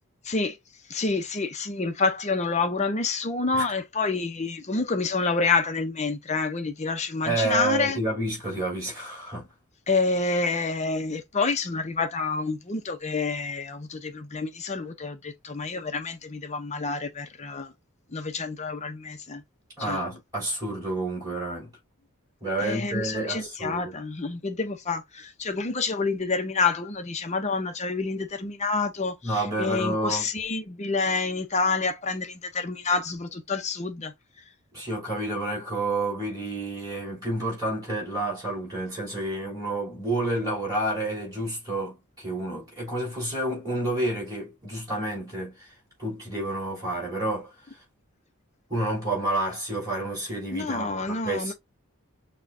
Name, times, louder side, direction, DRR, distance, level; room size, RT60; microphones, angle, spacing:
voice 1, 0.2-0.6 0.9-8.0 9.9-17.7 18.1-19.4 19.8-20.0 22.6-34.1 50.5-51.5, left 4 dB, 30° left, 0.7 m, -28 dB
voice 2, 7.2-9.5 19.8-21.7 22.4-24.0 29.2-30.3 34.7-45.7 46.0-47.5 48.7-51.5, right 2 dB, 15° right, 3.3 m, -29 dB
6.2 x 2.3 x 2.6 m
head